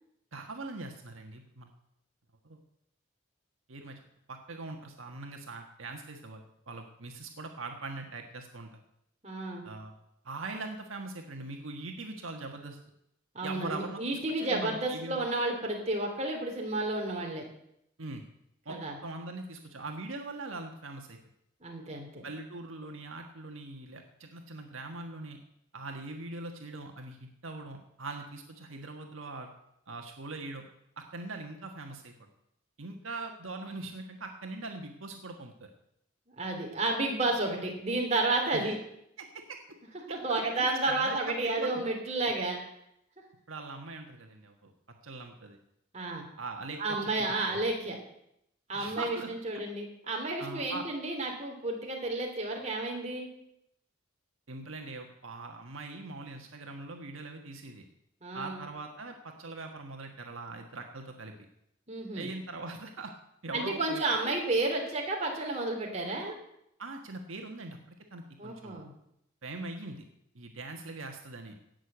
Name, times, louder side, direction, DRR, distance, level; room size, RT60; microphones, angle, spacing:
voice 1, 0.3-1.7 2.4-2.6 3.7-4.0 4.3-8.8 9.6-9.9 10.2-12.8 13.4-15.2 18.0-18.2 18.6-21.2 22.2-25.4 25.7-29.5 29.9-30.6 31.0-32.3 32.8-35.5 38.5-38.7 39.2-39.6 40.1-41.8 43.5-44.7 45.0-45.6 46.4-47.6 48.7-49.3 50.4-50.9 54.5-57.8 58.3-61.3 62.1-63.1 63.4-64.3 66.8-68.8 69.4-70.0 70.3-71.5, right 3 dB, 75° right, 3 dB, 1.5 m, -41 dB
voice 2, 9.2-9.6 13.3-17.4 18.7-18.9 21.6-22.3 36.4-38.8 40.1-42.6 45.9-46.2 46.8-48.0 48.7-53.3 58.2-58.6 61.9-62.3 63.5-66.4 68.4-68.9, right 2 dB, 30° right, 0 dB, 3.1 m, -31 dB
17.0 x 6.6 x 8.0 m, 0.79 s
head